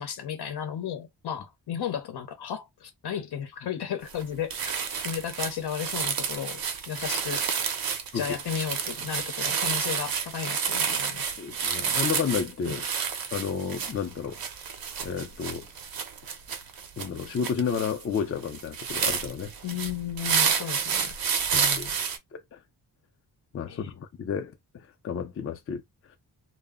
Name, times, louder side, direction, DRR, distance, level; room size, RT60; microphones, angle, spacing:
voice 1, 0.0-4.8 5.0-6.6 6.9-7.5 8.1-11.3 12.7-12.8 19.6-21.1 21.5-21.9 23.7-23.9, left 8 dB, 80° left, 0.7 m, -34 dB
sound 1, 4.1-4.2 4.5-22.2, right 7 dB, 65° right, 0.6 m, -30 dB
voice 2, 11.4-12.8 13.3-14.4 15.0-15.7 17.0-19.5 21.5-21.9 22.3-22.6 23.5-24.5 25.0-25.8, left 7 dB, 35° left, 0.4 m, -31 dB
2.1 x 2.0 x 3.5 m
wide cardioid pair, 115°, 39 cm